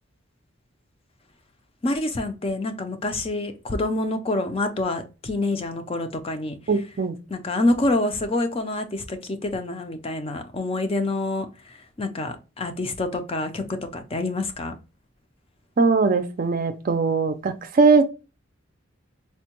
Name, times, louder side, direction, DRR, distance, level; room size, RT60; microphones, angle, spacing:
voice 1, 1.8-6.6 7.3-14.7, left 2 dB, 30° left, 0.4 m, -27 dB
voice 2, 6.7-7.2 15.8-18.0, right 4 dB, 40° right, 0.4 m, -20 dB
4.3 x 2.1 x 2.9 m
head